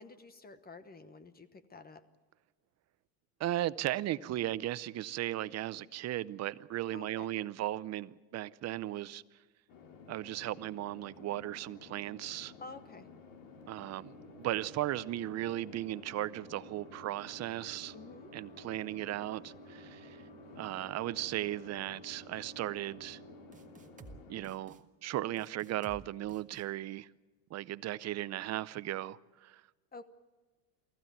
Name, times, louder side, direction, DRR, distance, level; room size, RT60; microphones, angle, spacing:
voice 1, 0.0-2.0 6.9-7.3 12.6-13.1 17.9-18.3 29.9-30.1, left 3 dB, 20° left, 1.1 m, -50 dB
voice 2, 3.4-9.2 10.1-12.5 13.7-14.1 14.4-17.9 18.3-20.2 20.6-23.2 24.3-27.1 27.5-29.6, right 14 dB, 35° right, 0.6 m, -36 dB
sound 1, 9.7-24.6, left 5 dB, 65° left, 3.3 m, -54 dB
sound 2, 13.6-25.0, right 5 dB, 80° left, 5.3 m, -56 dB
sound 3, 23.5-24.2 24.4-24.8 25.4-26.0 26.3-26.6, right 3 dB, 15° right, 1.6 m, -52 dB
24.5 x 15.0 x 9.3 m
supercardioid pair, 115°, 48 cm